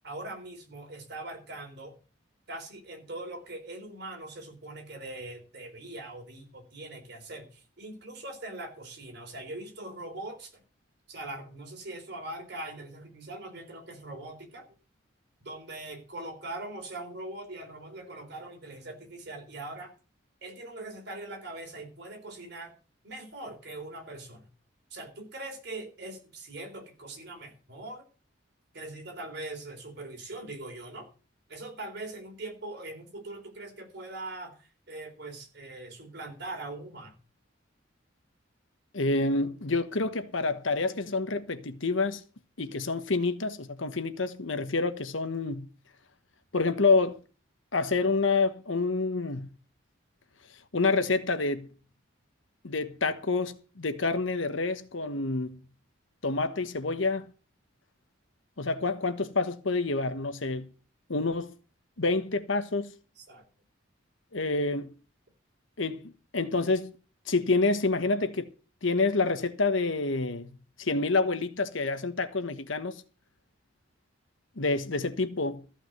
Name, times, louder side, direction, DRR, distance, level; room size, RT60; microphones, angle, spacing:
voice 1, 0.0-2.0 2.5-10.6 11.1-14.7 15.4-19.9 20.4-22.7 23.0-24.5 24.9-28.1 28.7-31.1 31.5-37.2 63.2-63.4, right 2 dB, 55° right, 3.8 m, -41 dB
voice 2, 38.9-42.2 42.6-45.7 46.5-47.2 47.7-49.5 50.7-51.7 52.6-55.6 56.2-57.3 58.6-60.7 61.1-61.6 62.0-62.9 64.3-64.9 65.8-66.9 67.3-68.5 68.8-70.5 70.8-73.0 74.6-75.7, left 3 dB, 75° left, 1.3 m, -28 dB
14.5 x 5.9 x 7.9 m
head